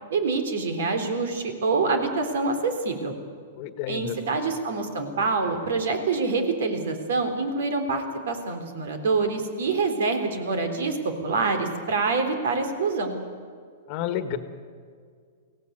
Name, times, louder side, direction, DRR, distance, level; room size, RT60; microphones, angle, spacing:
voice 1, 0.1-3.1 3.9-11.0 11.2-13.2, right 4 dB, 75° right, 6 dB, 3.6 m, -26 dB
voice 2, 3.6-4.2 13.9-14.4, left 10 dB, 35° left, 10 dB, 1.4 m, -30 dB
23.0 x 17.0 x 9.3 m, 2.1 s
hypercardioid pair, 155°, 0 cm